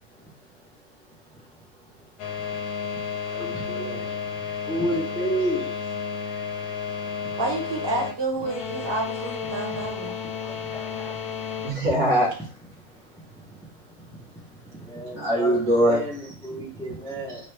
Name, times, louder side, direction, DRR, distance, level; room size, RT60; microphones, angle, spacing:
sound 1, 2.2-11.7, left 6 dB, 75° left, 1.1 m, -32 dB
voice 1, 3.3-4.0 4.7-5.7 14.9-17.4, right 1 dB, 5° left, -2 dB, 0.5 m, -30 dB
voice 2, 7.4-10.2, right 2 dB, 20° right, -1 dB, 0.9 m, -29 dB
voice 3, 10.4-11.1 11.6-12.3 15.1-16.0, right 1 dB, 75° right, -4 dB, 2.3 m, -22 dB
5.1 x 2.3 x 3.2 m, 0.42 s
omnidirectional pair, 1.6 m